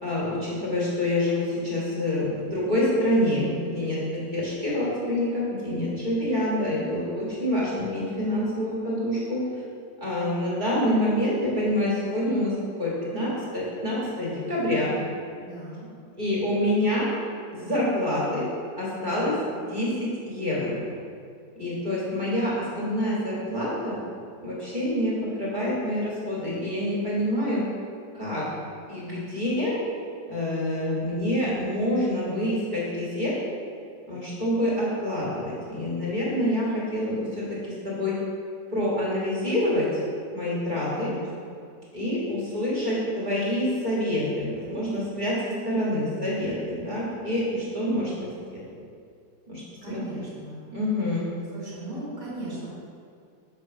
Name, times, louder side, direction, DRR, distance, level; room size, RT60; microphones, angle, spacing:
voice 1, 0.0-9.4 10.0-14.9 16.2-17.1 17.5-18.5 18.8-20.8 21.6-24.0 24.4-27.7 28.1-28.5 28.9-29.8 30.3-33.4 34.1-38.2 38.7-39.9 40.3-41.1 41.9-48.6 49.5-50.0 50.7-51.3, left 1 dB, 25° right, -8 dB, 1.8 m, -27 dB
voice 2, 15.4-15.9 40.9-41.5 49.8-50.7 51.5-52.7, right 2 dB, 80° right, -9 dB, 2.7 m, -37 dB
7.0 x 4.7 x 4.6 m, 2.4 s
omnidirectional pair, 1.9 m